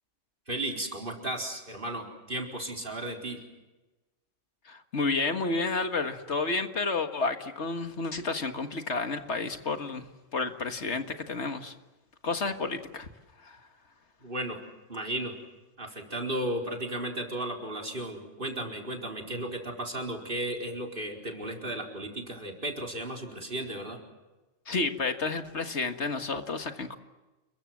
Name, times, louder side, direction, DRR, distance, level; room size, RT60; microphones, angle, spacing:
voice 1, 0.5-3.4 14.2-14.6 14.9-15.4 15.8-24.0, right 1 dB, 45° right, 2 dB, 4.7 m, -34 dB
voice 2, 4.7-10.1 10.3-11.7 12.2-13.1 13.4-13.6 24.7-27.0, left 3 dB, 65° left, 8 dB, 1.9 m, -31 dB
29.5 x 22.5 x 7.6 m, 1.1 s
omnidirectional pair, 1.3 m